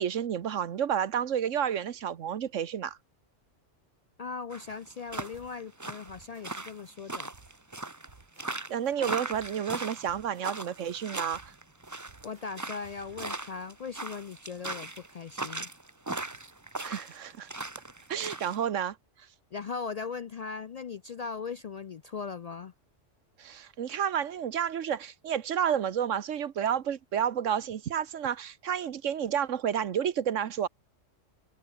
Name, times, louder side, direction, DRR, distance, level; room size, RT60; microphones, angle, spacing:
voice 1, 0.0-3.0 8.7-11.4 16.8-17.5 18.1-19.0 23.4-30.7, right 9 dB, 75° right, 1.3 m, -30 dB
voice 2, 4.2-7.3 12.2-15.7 19.5-22.7, left 5 dB, 75° left, 0.3 m, -39 dB
sound 1, 4.5-18.6, right 2 dB, 15° right, 1.0 m, -38 dB
sound 2, 5.3-5.6 5.8-6.9 7.3-7.6 7.8-9.6 9.8-10.9 11.3-11.6 11.8-13.3, right 4 dB, 40° right, 1.9 m, -58 dB
omnidirectional pair, 1.3 m